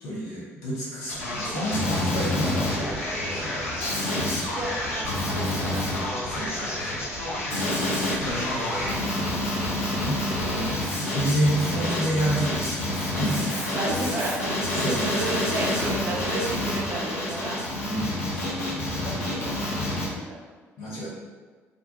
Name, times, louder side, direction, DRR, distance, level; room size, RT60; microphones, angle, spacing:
voice 1, 0.0-3.0 3.3-3.9 6.3-7.1 7.8-8.5 8.8-9.3 9.7-10.6 11.0-13.5 14.7-15.2 17.8-19.8 20.8-21.1, right 1 dB, 65° left, -7 dB, 0.9 m, -30 dB
Male speech man speaking, 1.1-20.1, left 1 dB, 85° left, 0.5 m, -28 dB
voice 2, 4.5-5.8 7.9-8.5 10.1-10.7 11.2-11.4 12.8-12.9 13.7-17.6 19.0-19.6 20.0-20.4, right 2 dB, 35° right, -3 dB, 0.7 m, -33 dB
2.6 x 2.2 x 2.8 m, 1.4 s
figure-of-eight pair, 45°, 7 cm